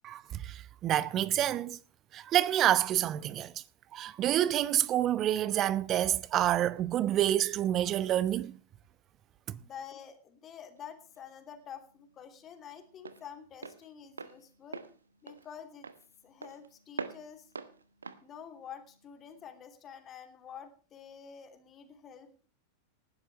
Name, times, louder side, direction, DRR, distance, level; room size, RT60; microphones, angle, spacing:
voice 1, 0.0-1.8 2.1-3.5 3.9-8.6 9.5-9.6, right 12 dB, 30° right, 0.7 m, -28 dB
voice 2, 9.6-14.8 15.2-15.9 16.2-17.5 18.2-22.5, left 8 dB, 30° left, 2.8 m, -48 dB
Walk footsteps, 10.8-19.5, right 4 dB, 75° right, 1.0 m, -46 dB
19.0 x 12.0 x 3.1 m
figure-of-eight pair, 90°, 0 cm